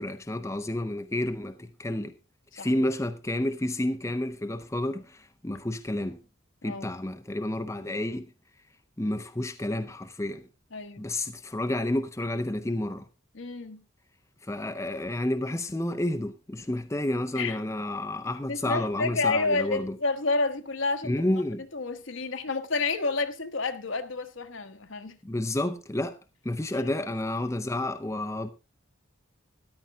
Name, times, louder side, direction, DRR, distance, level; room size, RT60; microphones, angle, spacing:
voice 1, 0.0-2.1 2.5-6.2 6.6-8.3 9.0-10.5 11.0-13.1 14.4-20.0 21.0-21.6 25.2-26.2 26.4-28.5, left 1 dB, 15° left, 0.6 m, -30 dB
voice 2, 10.7-11.1 13.3-13.8 17.3-17.6 18.5-21.2 21.7-25.2 26.7-26.9, left 3 dB, 70° left, 1.2 m, -29 dB
13.5 x 10.5 x 3.5 m
head